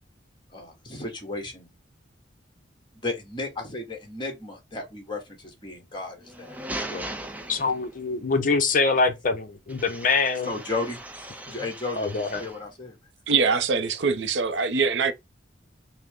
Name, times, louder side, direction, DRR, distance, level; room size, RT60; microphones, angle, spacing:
voice 1, 0.5-1.7 3.0-7.1 10.5-11.0 11.5-12.9, left 3 dB, 25° left, 1.3 m, -34 dB
sound 1, 6.2-8.1 9.7-12.7, right 1 dB, 10° right, 0.4 m, -39 dB
voice 2, 7.5-10.5 12.0-12.4, left 4 dB, 45° left, 0.6 m, -24 dB
voice 3, 13.3-15.1, right 5 dB, 70° right, 0.5 m, -23 dB
5.8 x 2.0 x 3.5 m
head